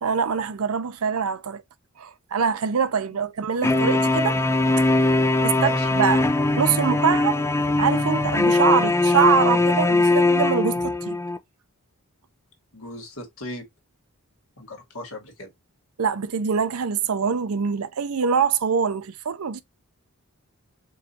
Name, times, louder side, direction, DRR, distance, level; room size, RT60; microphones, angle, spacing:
voice 1, 0.0-1.6 2.0-5.0 5.4-6.3 6.6-7.4 7.8-11.2 16.0-19.6, right 6 dB, 70° right, 0.6 m, -24 dB
sound 1, 3.6-11.4, left 2 dB, 10° left, 0.4 m, -21 dB
voice 2, 5.5-5.9 12.7-13.7 14.6-15.5, left 1 dB, 65° left, 1.7 m, -37 dB
4.7 x 2.5 x 2.7 m
head